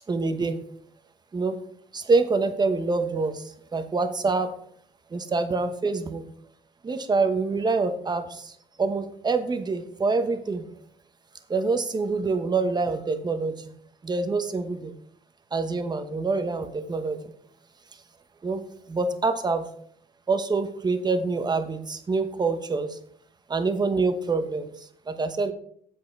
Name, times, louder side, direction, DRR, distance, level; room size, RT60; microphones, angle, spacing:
voice 1, 0.1-0.6 1.3-1.6 1.9-4.5 5.1-6.3 6.8-8.5 8.8-10.7 11.5-13.7 14.0-14.9 15.5-17.3 18.4-18.6 18.9-19.7 20.3-23.0 23.5-25.5, right 3 dB, 25° right, 9 dB, 1.1 m, -26 dB
8.0 x 7.9 x 4.6 m, 0.64 s
cardioid pair, 110°, 17 cm